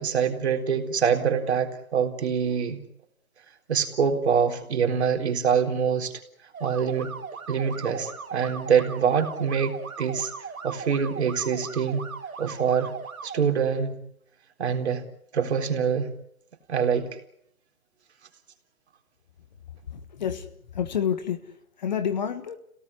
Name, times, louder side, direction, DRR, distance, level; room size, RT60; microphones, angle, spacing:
voice 1, 0.0-2.8 3.7-6.2 6.6-7.1 7.5-12.0 12.4-12.9 13.2-14.0 14.6-15.0 15.3-16.1 16.7-17.2, right 7 dB, 50° right, 4.0 m, -25 dB
sound 1, 6.5-13.4, right 5 dB, 80° right, 3.2 m, -39 dB
voice 2, 19.9-22.6, left 8 dB, 30° left, 1.4 m, -29 dB
27.5 x 18.0 x 9.8 m
hypercardioid pair, 165°, 42 cm